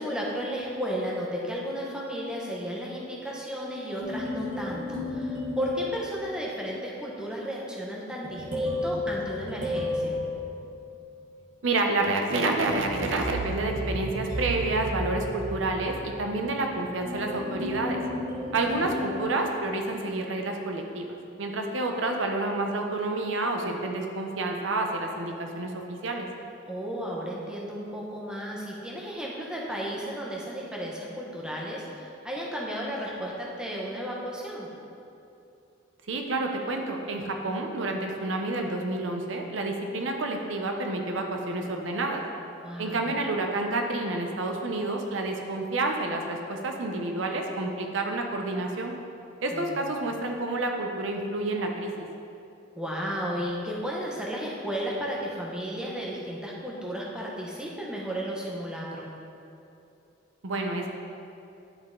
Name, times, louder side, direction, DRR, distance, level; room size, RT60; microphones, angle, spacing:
voice 1, 0.0-10.2 18.3-18.9 26.7-34.7 42.6-43.1 49.5-49.7 52.8-59.1, equal, 5° right, -4 dB, 0.9 m, -34 dB
sound 1, 4.0-6.6 8.2-11.2 12.6-20.0, left 1 dB, 45° right, 1.3 m, -33 dB
voice 2, 11.6-18.0 18.5-21.1 21.4-26.3 36.1-42.2 42.8-48.9 49.4-52.1 60.4-60.9, right 2 dB, 70° right, 2 dB, 0.7 m, -29 dB
10.5 x 3.8 x 3.7 m, 2.7 s
head